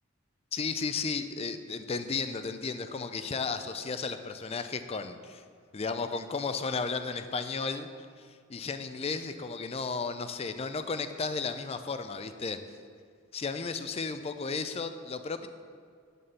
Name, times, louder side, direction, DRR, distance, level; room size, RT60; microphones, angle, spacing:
voice 1, 0.5-5.4 5.7-7.9 8.2-12.6 13.3-15.5, left 4 dB, 30° left, 9 dB, 0.4 m, -34 dB
11.0 x 4.2 x 6.9 m, 2.1 s
head